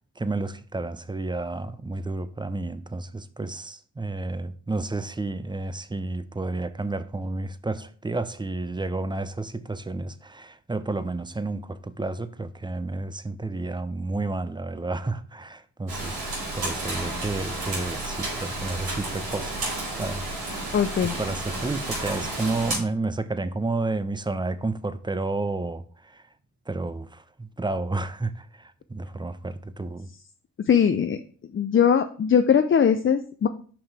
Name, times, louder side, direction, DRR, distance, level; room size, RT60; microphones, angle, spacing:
voice 1, 0.2-16.2 16.6-20.3 21.0-26.2 26.7-30.1, right 2 dB, 15° right, 0.5 m, -31 dB
Rain, 15.9-22.8, right 2 dB, 80° right, 3.2 m, -31 dB
voice 2, 20.7-21.2 30.7-31.2 31.5-33.5, left 7 dB, 35° left, 0.5 m, -20 dB
5.8 x 5.3 x 3.4 m
supercardioid pair, 50°, 36 cm